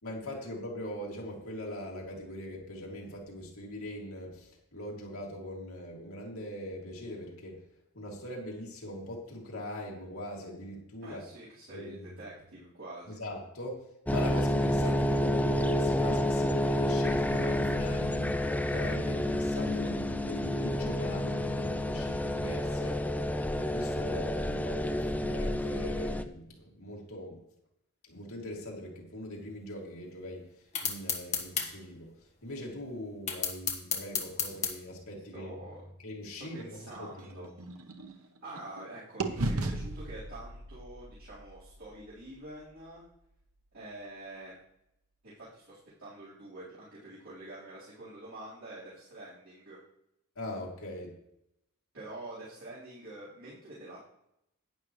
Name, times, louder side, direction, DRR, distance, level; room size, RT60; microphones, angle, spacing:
voice 1, 0.0-7.6 7.9-11.3 11.7-12.1 13.2-23.3 23.5-27.4 28.0-30.5 30.8-35.5 36.0-37.5 50.4-51.1, left 1 dB, 75° left, -1 dB, 2.6 m, -41 dB
voice 2, 11.0-13.1 35.3-35.8 36.3-37.5 38.0-43.0 43.7-44.6 45.2-49.8 51.9-54.0, right 1 dB, 60° right, -11 dB, 4.1 m, -46 dB
sound 1, 14.1-26.2, left 1 dB, 5° left, 0.4 m, -29 dB
sound 2, 30.8-31.7 33.3-34.7, left 7 dB, 30° left, 1.5 m, -31 dB
sound 3, 36.5-38.8 39.2-43.2, right 2 dB, 85° right, 1.0 m, -38 dB
11.5 x 9.9 x 3.2 m, 0.81 s
head